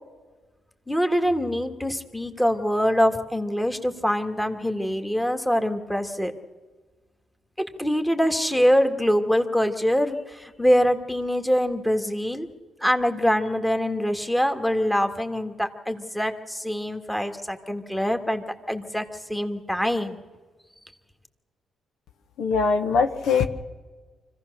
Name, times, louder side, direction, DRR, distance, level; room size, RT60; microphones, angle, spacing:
voice 1, 0.9-6.3 7.8-12.5 12.8-19.0 19.3-20.2, equal, 5° left, 6 dB, 1.8 m, -24 dB
voice 2, 22.4-23.5, left 5 dB, 75° left, 7 dB, 1.2 m, -21 dB
25.0 x 15.5 x 6.7 m, 1.4 s
cardioid pair, 90°, 0 cm